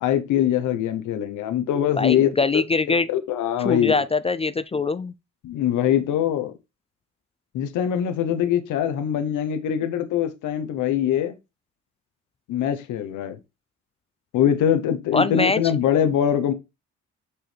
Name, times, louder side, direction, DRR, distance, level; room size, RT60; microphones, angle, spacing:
voice 1, 0.0-2.3 3.3-4.0 5.4-6.5 7.5-11.3 12.5-13.4 14.3-16.5, left 10 dB, 85° left, 0.9 m, -22 dB
voice 2, 2.0-3.1 3.6-5.1 15.1-15.6, left 4 dB, 20° left, 0.3 m, -22 dB
6.3 x 4.7 x 3.3 m
cardioid pair, 90°, 30 cm